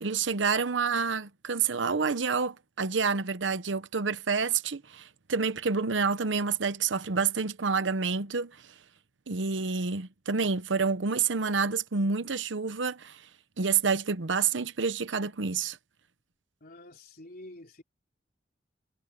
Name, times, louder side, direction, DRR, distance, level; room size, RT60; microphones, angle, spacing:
voice 1, 0.0-8.5 9.3-13.2 13.6-15.8, right 5 dB, 80° right, 0.9 m, -28 dB
voice 2, 16.6-17.8, left 1 dB, 55° left, 3.6 m, -48 dB
head